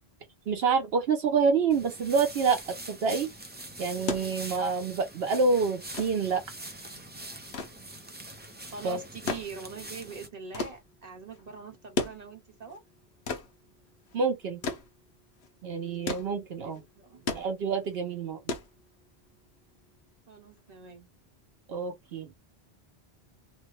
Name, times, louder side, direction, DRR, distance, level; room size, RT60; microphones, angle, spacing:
voice 1, 0.5-3.3 3.8-6.4 8.8-9.0 14.1-14.6 15.6-16.8 17.3-18.5 21.7-22.3, right 5 dB, 75° right, 1.0 m, -27 dB
sound 1, 1.7-10.3, right 1 dB, 10° right, 0.5 m, -44 dB
sound 2, 4.1-19.3 20.6-20.7, left 4 dB, 85° left, 1.1 m, -38 dB
voice 2, 8.7-12.8 16.6-17.5 20.3-21.1, right 5 dB, 40° right, 1.2 m, -43 dB
3.2 x 2.2 x 3.0 m
omnidirectional pair, 1.1 m